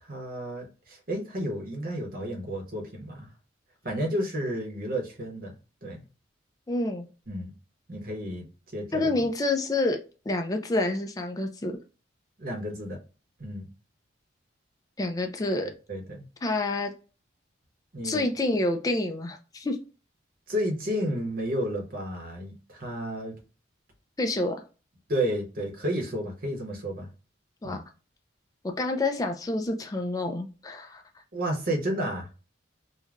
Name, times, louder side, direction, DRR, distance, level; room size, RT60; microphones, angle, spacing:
voice 1, 0.0-3.3 3.8-5.6 5.8-6.0 7.3-7.5 7.9-8.5 8.7-9.2 12.4-13.0 13.4-13.7 15.6-16.3 17.9-18.2 20.5-23.4 25.1-27.1 27.6-27.8 31.3-32.3, equal, 45° right, 0.8 m, -31 dB
voice 2, 6.7-7.1 8.9-10.0 10.3-11.8 15.0-15.7 16.4-16.9 18.0-19.8 24.2-24.6 27.6-27.8 28.8-31.0, left 2 dB, 20° left, 0.3 m, -28 dB
3.1 x 2.1 x 2.4 m
head